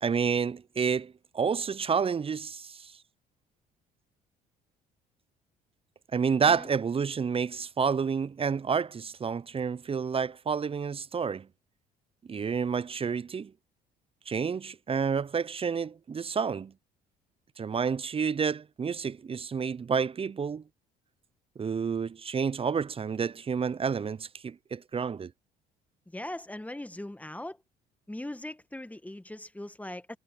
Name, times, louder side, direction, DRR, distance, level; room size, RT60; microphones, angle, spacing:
voice 1, 0.0-2.9 6.1-11.5 12.3-13.5 14.3-16.7 17.6-20.6 21.6-25.3, right 6 dB, 30° right, 0.6 m, -29 dB
voice 2, 26.1-27.6 28.1-30.2, left 1 dB, 5° left, 1.8 m, -40 dB
hypercardioid pair, 55°, 19 cm